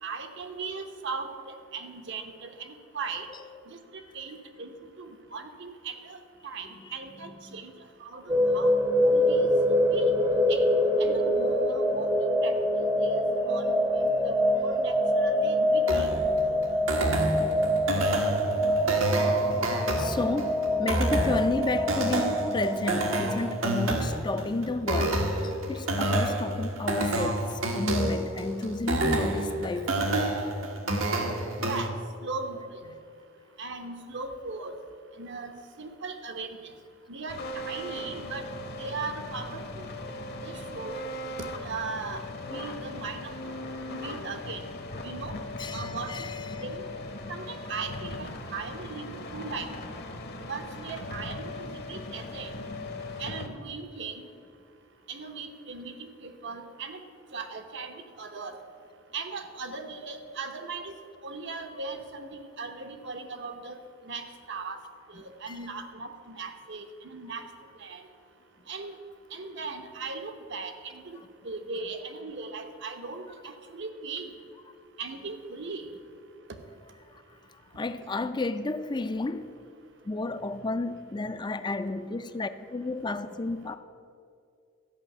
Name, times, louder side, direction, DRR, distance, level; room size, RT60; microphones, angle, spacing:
voice 1, 0.0-3.3 3.7-4.7 5.0-7.7 8.0-8.7 9.0-9.5 9.9-10.1 10.5-10.6 11.0-12.5 12.8-16.1 17.2-17.3 31.6-31.9 32.2-32.9 33.6-34.8 35.2-36.6 37.1-38.4 38.8-39.9 40.4-41.1 41.4-42.2 42.5-43.6 43.9-44.6 45.0-45.4 45.7-46.1 46.6-46.8 47.3-49.7 50.4-52.6 53.2-54.3 55.1-57.0 57.3-58.6 59.1-61.0 61.2-63.8 64.0-64.8 65.1-67.5 67.8-68.0 68.7-68.9 69.3-71.2 71.4-74.3 75.0-75.9 78.0-78.1, right 4 dB, 65° right, 1.0 m, -38 dB
sound 1, 8.3-23.5, equal, 15° right, 0.7 m, -25 dB
sound 2, 15.9-31.9, right 1 dB, 80° right, 1.3 m, -29 dB
voice 2, 20.0-30.3 45.6-46.6 65.5-65.6 77.1-77.2 77.8-79.5 80.0-83.8, left 2 dB, 20° left, 0.4 m, -32 dB
sound 3, 37.3-53.5, left 2 dB, 55° left, 1.1 m, -38 dB
13.0 x 5.7 x 7.9 m
head